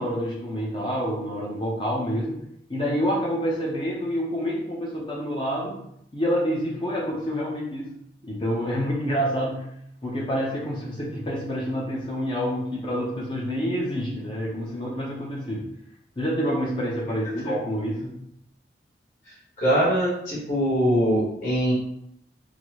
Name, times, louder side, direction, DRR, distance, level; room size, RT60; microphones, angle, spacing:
voice 1, 0.0-2.4 2.7-5.8 6.1-7.9 8.2-9.7 10.0-15.7 16.2-18.2, equal, 30° left, -4 dB, 0.6 m, -27 dB
voice 2, 19.2-21.7, equal, 45° left, -7 dB, 1.2 m, -23 dB
3.9 x 2.0 x 3.0 m, 0.74 s
head